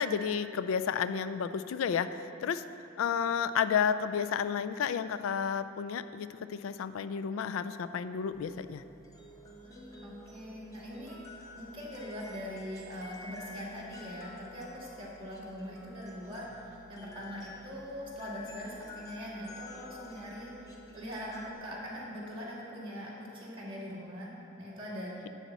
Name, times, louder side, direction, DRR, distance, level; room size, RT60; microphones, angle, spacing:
voice 1, 0.0-2.6 3.0-8.8, left 7 dB, 85° left, 13 dB, 0.3 m, -31 dB
sound 1, 8.3-21.5, left 2 dB, 20° left, 0.8 m, -50 dB
voice 2, 9.6-11.2 11.6-24.3 24.6-25.1, equal, 25° right, -6 dB, 1.9 m, -42 dB
10.0 x 4.2 x 7.1 m, 2.7 s
head